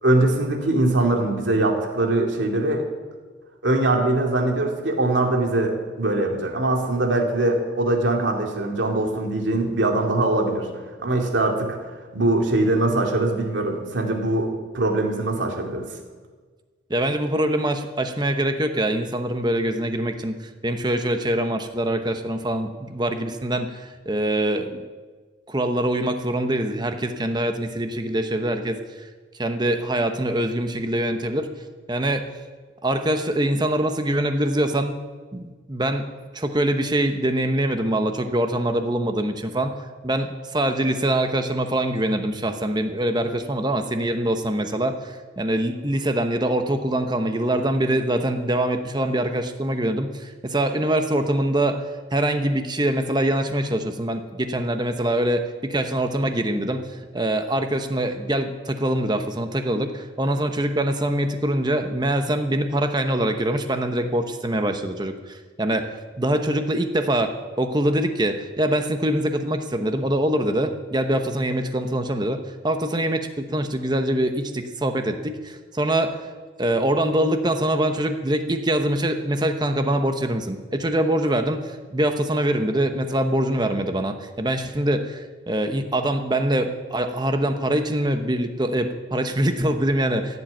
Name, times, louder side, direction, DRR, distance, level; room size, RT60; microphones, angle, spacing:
voice 1, 0.0-2.8 3.6-10.7 11.0-15.9, right 2 dB, 75° right, 1 dB, 2.4 m, -22 dB
voice 2, 16.9-24.8 25.5-29.1 29.4-31.5 31.9-32.3 32.8-35.0 35.3-36.1 36.3-39.7 40.0-51.8 52.1-72.4 72.6-76.3 76.6-90.4, right 1 dB, 20° right, 7 dB, 0.9 m, -24 dB
15.0 x 7.7 x 9.1 m, 1.4 s
head